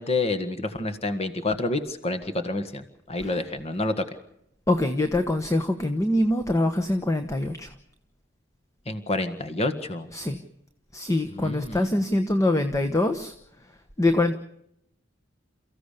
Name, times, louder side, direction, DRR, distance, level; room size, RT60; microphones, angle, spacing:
voice 1, 0.0-2.8 3.1-4.0 8.9-10.1 11.3-12.0, left 2 dB, 35° left, 9 dB, 1.7 m, -28 dB
voice 2, 4.7-7.7 10.1-10.4 10.9-13.3 14.0-14.3, left 1 dB, 15° left, 7 dB, 1.1 m, -24 dB
29.0 x 15.5 x 6.7 m, 0.75 s
head